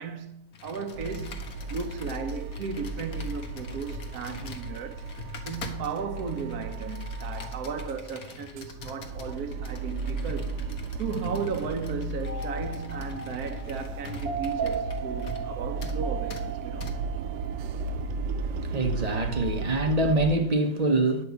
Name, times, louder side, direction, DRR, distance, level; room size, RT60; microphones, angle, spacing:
voice 1, 0.0-5.0 5.4-10.6 11.0-17.0, right 5 dB, 65° right, 1.3 m, -35 dB
Computer keyboard, 0.5-15.5 15.8-16.0 16.3-16.4 16.8-16.9, left 5 dB, 60° left, 1.6 m, -45 dB
sound 1, 0.9-8.0 8.4-20.4, right 3 dB, 85° right, 1.3 m, -35 dB
sound 2, 12.3-18.1, right 6 dB, 20° right, 2.1 m, -37 dB
voice 2, 18.6-21.2, right 2 dB, 45° right, 0.5 m, -25 dB
10.0 x 5.1 x 8.1 m
omnidirectional pair, 1.8 m